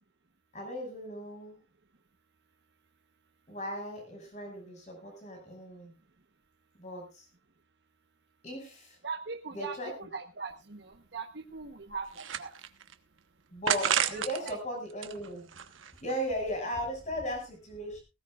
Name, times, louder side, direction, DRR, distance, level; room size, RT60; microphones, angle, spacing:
voice 1, 0.5-1.6 3.5-5.9 6.8-7.3 8.4-9.0 9.5-9.9 13.5-15.5 16.0-18.0, equal, 35° left, 3 dB, 6.1 m, -37 dB
voice 2, 9.0-12.5 14.0-14.6, right 4 dB, 60° right, 5 dB, 1.1 m, -41 dB
sound 1, 10.5-10.6 10.9-11.0 11.6-12.9 13.7-14.5 14.9-16.1, right 8 dB, 85° right, 1.1 m, -32 dB
18.5 x 16.5 x 2.4 m, 0.28 s
head